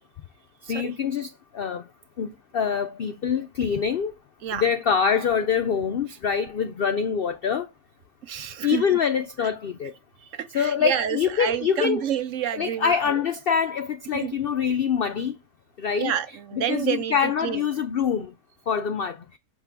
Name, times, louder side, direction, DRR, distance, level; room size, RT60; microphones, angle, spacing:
voice 1, 0.7-1.3 1.5-1.8 2.2-4.1 4.6-7.7 8.6-9.9 10.5-12.0 12.6-15.3 15.8-16.1 16.5-18.3 18.7-19.2, left 7 dB, 75° left, 0.5 m, -25 dB
voice 2, 8.2-9.0 9.4-9.5 10.2-13.2 14.1-14.4 16.0-17.6, right 9 dB, 65° right, 0.9 m, -29 dB
7.3 x 3.4 x 5.9 m
omnidirectional pair, 1.6 m